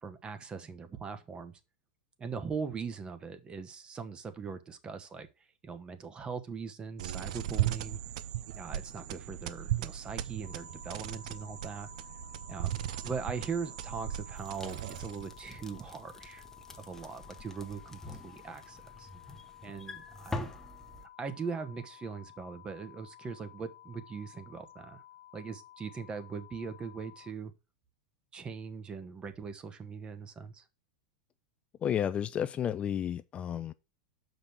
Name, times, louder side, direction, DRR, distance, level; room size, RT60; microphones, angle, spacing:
voice 1, 0.0-1.6 2.2-5.3 5.6-8.0 8.5-11.9 12.5-16.4 16.8-19.1 19.6-20.5 21.2-25.0 25.3-27.5 28.3-30.7, right 5 dB, 20° right, 1.1 m, -40 dB
sound 1, 7.0-15.4, right 12 dB, 65° right, 0.6 m, -37 dB
sound 2, 10.4-27.3, left 13 dB, 65° left, 1.0 m, -55 dB
sound 3, 14.4-21.0, left 2 dB, 10° left, 1.0 m, -45 dB
voice 2, 31.8-33.7, left 9 dB, 25° left, 0.4 m, -32 dB
6.2 x 5.2 x 5.7 m
hypercardioid pair, 115°, 4 cm